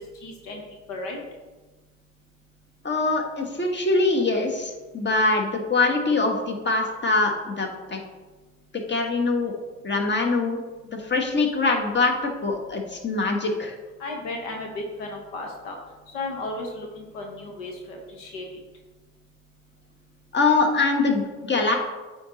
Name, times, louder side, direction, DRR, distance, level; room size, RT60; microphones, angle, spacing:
voice 1, 0.2-0.6 0.9-1.2 14.0-15.8 16.1-18.4, left 2 dB, 85° left, 1 dB, 1.0 m, -34 dB
voice 2, 2.8-8.0 8.9-9.5 9.8-10.6 11.0-13.7 20.3-21.8, left 3 dB, 30° left, 2 dB, 1.3 m, -23 dB
8.5 x 3.1 x 3.8 m, 1.2 s
hypercardioid pair, 55°, 34 cm